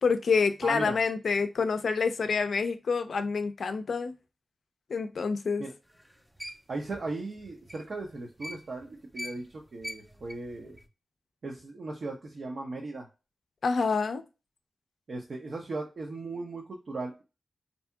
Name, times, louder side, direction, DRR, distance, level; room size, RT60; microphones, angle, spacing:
voice 1, 0.0-4.1 4.9-5.6 13.6-14.2, left 5 dB, 75° left, 0.4 m, -27 dB
voice 2, 0.6-1.0 5.6-5.7 6.7-9.5 9.7-10.8 11.4-13.1 15.1-17.2, right 2 dB, 65° right, 0.6 m, -37 dB
sound 1, 5.9-8.9 9.1-10.9, left 1 dB, 5° right, 0.5 m, -43 dB
2.7 x 2.7 x 2.2 m
cardioid pair, 50°, 0 cm